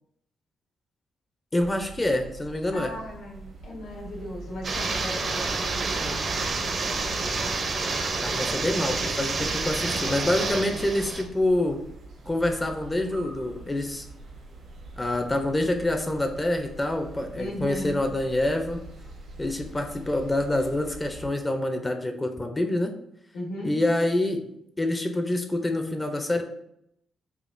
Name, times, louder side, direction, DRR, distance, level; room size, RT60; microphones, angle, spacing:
voice 1, 1.5-2.9 8.2-11.8 12.3-14.1 15.0-18.8 19.4-22.9 23.6-24.4 24.8-26.4, left 1 dB, 15° left, 5 dB, 0.4 m, -26 dB
sound 1, 1.6-21.3, right 3 dB, 75° right, 0.9 m, -44 dB
voice 2, 2.7-6.7 10.7-10.8 17.4-18.0 23.3-23.8, equal, 90° left, -2 dB, 1.1 m, -37 dB
sound 2, 4.6-11.2, right 3 dB, 45° right, 0.5 m, -28 dB
4.9 x 2.3 x 2.5 m, 0.77 s
cardioid pair, 115°, 0 cm